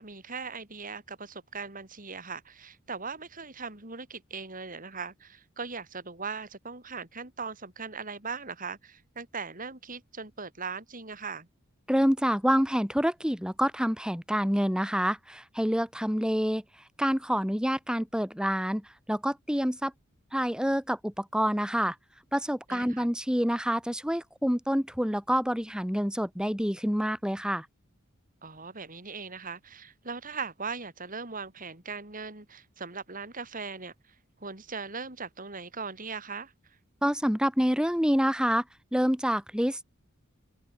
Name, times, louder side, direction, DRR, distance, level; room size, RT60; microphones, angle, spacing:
voice 1, 0.0-11.5 22.7-23.1 28.4-33.9 34.4-36.5, right 5 dB, 40° right, 4.9 m, -39 dB
voice 2, 11.9-16.6 17.0-19.9 20.3-22.0 22.3-27.7 37.0-38.6 38.9-39.8, equal, 5° right, 5.4 m, -27 dB
head